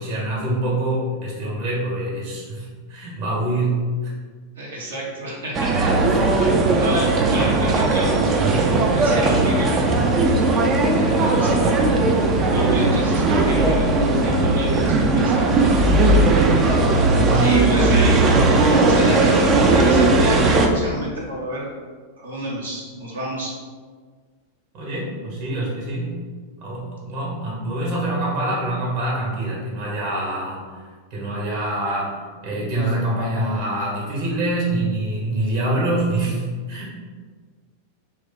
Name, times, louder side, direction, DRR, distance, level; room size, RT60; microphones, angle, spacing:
voice 1, 0.0-4.1 6.1-6.3 17.0-17.5 24.7-26.1 26.6-30.6 31.1-32.1 32.4-36.9, right 1 dB, 45° right, -4 dB, 1.3 m, -25 dB
voice 2, 4.6-8.2 8.5-10.0 10.9-12.1 12.5-15.3 17.1-18.2 18.7-21.6 22.2-23.5, right 1 dB, 70° right, -4 dB, 1.1 m, -30 dB
sound 1, 5.5-20.7, right 2 dB, 25° right, 0.4 m, -17 dB
3.0 x 2.7 x 3.8 m, 1.5 s
figure-of-eight pair, 90°, 0 cm